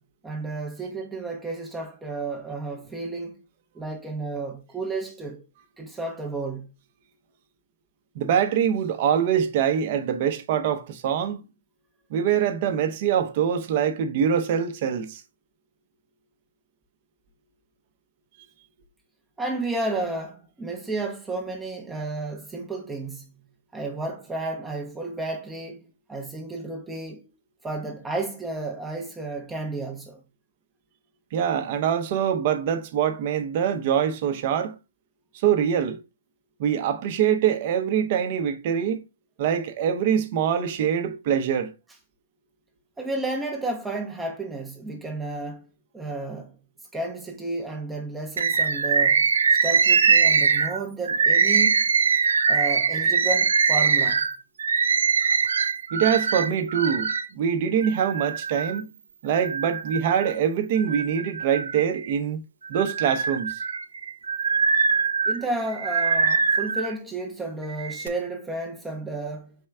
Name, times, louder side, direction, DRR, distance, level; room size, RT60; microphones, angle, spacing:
voice 1, 0.2-3.4 3.7-5.4 5.8-6.7 19.4-23.3 23.7-27.2 27.6-30.2 43.0-45.7 45.9-46.6 46.9-51.9 52.5-54.3 65.3-69.5, right 2 dB, 10° right, 0.7 m, -32 dB
voice 2, 8.2-11.5 12.1-15.2 31.3-34.8 35.4-36.0 36.6-39.0 39.4-41.7 55.9-58.9 59.2-62.4 62.7-63.6, right 8 dB, 45° right, 0.7 m, -24 dB
Bird, 48.4-57.3 57.8-58.8 59.3-60.3 60.8-62.2 62.6-66.9 67.6-68.1, right 5 dB, 70° right, 0.4 m, -22 dB
4.5 x 3.1 x 3.3 m
figure-of-eight pair, 125°, 0 cm